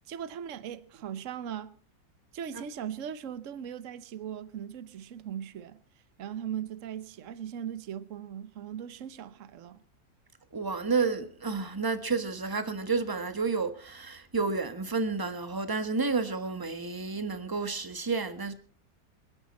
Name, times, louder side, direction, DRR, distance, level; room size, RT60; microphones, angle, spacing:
voice 1, 0.1-1.7 2.3-5.8 6.2-9.8, right 9 dB, 50° right, 1.1 m, -39 dB
voice 2, 10.5-18.5, right 4 dB, 15° right, 1.1 m, -30 dB
28.0 x 10.5 x 4.3 m
omnidirectional pair, 2.2 m